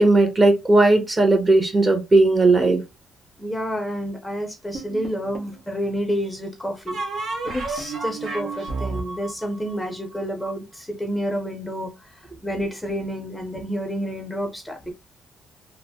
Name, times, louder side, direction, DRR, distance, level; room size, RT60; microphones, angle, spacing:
voice 1, 0.0-2.8, right 2 dB, 30° right, 1.0 m, -17 dB
voice 2, 3.4-14.9, equal, 10° left, 0.6 m, -29 dB
sound 1, 4.7-5.6 6.9-10.5, right 3 dB, 65° right, 1.0 m, -31 dB
3.2 x 2.1 x 2.7 m
cardioid pair, 90°, 0 cm